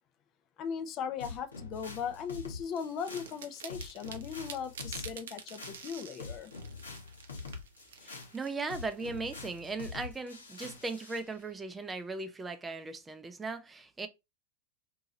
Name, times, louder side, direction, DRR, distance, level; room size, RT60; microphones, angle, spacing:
voice 1, 0.6-6.5, left 7 dB, 40° left, 0.5 m, -38 dB
sound 1, 1.2-11.3, left 4 dB, 80° left, 0.9 m, -45 dB
sound 2, 2.7-9.6, right 7 dB, 70° right, 0.6 m, -49 dB
voice 2, 8.0-14.1, right 3 dB, 15° right, 0.5 m, -38 dB
2.8 x 2.8 x 3.7 m
figure-of-eight pair, 90°, 0 cm